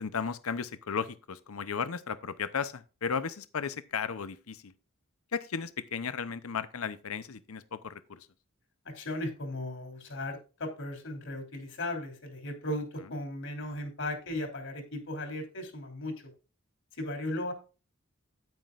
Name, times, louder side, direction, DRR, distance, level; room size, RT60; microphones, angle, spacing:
voice 1, 0.0-4.7 5.3-8.3, left 6 dB, 85° left, 0.7 m, -35 dB
voice 2, 8.8-16.3 17.0-17.5, left 1 dB, 65° left, 3.2 m, -36 dB
9.4 x 9.4 x 2.5 m
head